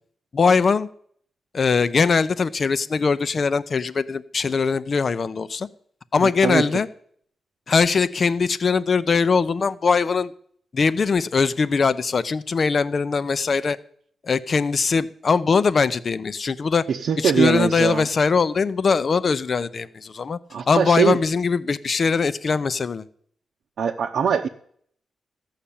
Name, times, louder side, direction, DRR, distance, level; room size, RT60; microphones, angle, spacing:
voice 1, 0.3-0.9 1.5-5.7 6.1-6.9 7.7-10.3 10.7-13.8 14.2-16.9 17.2-20.4 20.7-23.0, left 5 dB, 45° left, 15 dB, 0.6 m, -21 dB
voice 2, 6.2-6.7 16.9-18.0 20.5-21.2 23.8-24.5, right 7 dB, 75° right, 3 dB, 0.7 m, -22 dB
13.5 x 5.8 x 8.6 m, 0.62 s
cardioid pair, 95°, 0 cm